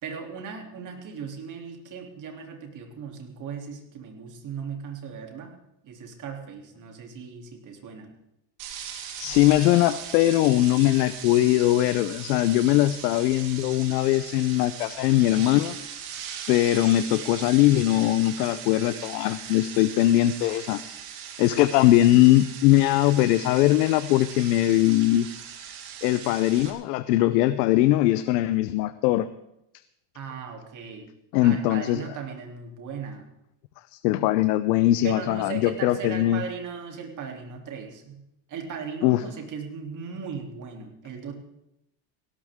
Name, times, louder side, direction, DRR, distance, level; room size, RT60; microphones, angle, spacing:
voice 1, 0.0-5.5 5.8-8.1 30.1-31.1 31.4-33.3 35.0-38.2 38.5-41.3, right 6 dB, 40° right, 2 dB, 3.2 m, -37 dB
sound 1, 8.6-26.7, right 8 dB, 75° right, 3.9 m, -39 dB
voice 2, 9.2-15.7 16.5-20.8 21.4-25.3 26.0-29.3 31.3-32.0 34.0-36.4 39.0-39.2, left 15 dB, 90° left, 13 dB, 0.8 m, -21 dB
18.5 x 17.0 x 3.7 m, 0.82 s
cardioid pair, 145°, 48 cm